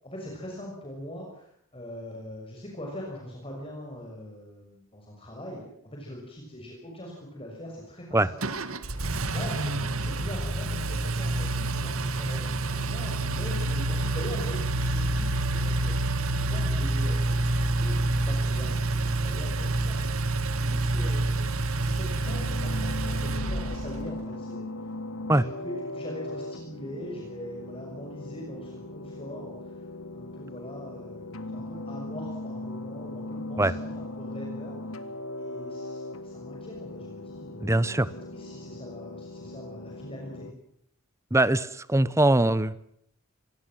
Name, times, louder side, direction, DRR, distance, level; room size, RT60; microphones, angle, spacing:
voice 1, 0.0-8.4 8.8-20.2 20.5-21.5 21.7-24.9 25.3-29.9 30.1-34.8 35.3-40.5, equal, 25° left, -1 dB, 6.3 m, -42 dB
Engine, 8.4-24.1, right 2 dB, 85° right, 2.1 m, -28 dB
sound 1, 22.2-40.5, left 2 dB, 80° left, 1.7 m, -39 dB
voice 2, 37.6-38.1 41.3-42.8, right 1 dB, 15° right, 16 dB, 1.0 m, -22 dB
26.5 x 22.0 x 7.7 m, 0.69 s
head